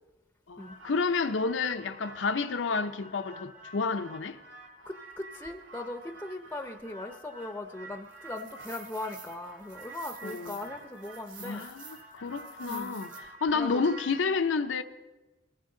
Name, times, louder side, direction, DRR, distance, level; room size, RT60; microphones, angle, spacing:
voice 1, 0.5-4.4 10.2-10.6 11.4-14.8, left 4 dB, 85° left, 0.6 m, -30 dB
sound 1, 0.6-14.2, right 2 dB, 80° right, 2.3 m, -47 dB
voice 2, 4.9-11.7 12.6-13.0 13.5-13.8, left 2 dB, 10° left, 0.6 m, -39 dB
21.5 x 15.0 x 3.8 m
head